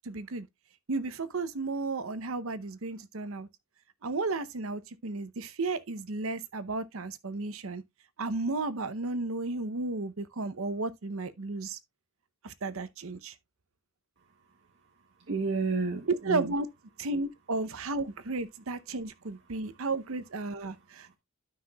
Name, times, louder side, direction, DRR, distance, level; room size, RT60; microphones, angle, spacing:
voice 1, 0.1-0.4 0.9-3.5 4.0-7.8 8.2-11.8 12.4-13.3 16.3-16.7 17.0-21.1, right 3 dB, 75° right, 0.7 m, -33 dB
voice 2, 15.2-16.5 19.5-19.8 20.7-21.2, right 4 dB, 60° right, 1.1 m, -33 dB
12.5 x 5.7 x 2.3 m
head